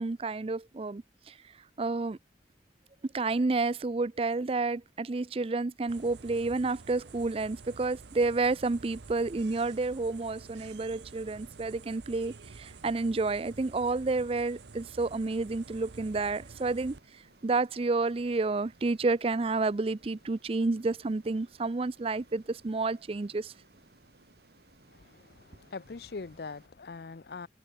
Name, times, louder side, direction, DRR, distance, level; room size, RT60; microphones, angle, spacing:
voice 1, 0.0-1.4 1.8-2.2 3.1-17.0 17.4-23.5, right 3 dB, 35° right, 0.5 m, -30 dB
sound 1, 5.9-17.0, right 4 dB, 80° right, 0.8 m, -50 dB
Ocean, 7.0-26.7, right 2 dB, 65° right, 2.4 m, -61 dB
voice 2, 24.9-27.5, left 4 dB, 60° left, 0.6 m, -42 dB
head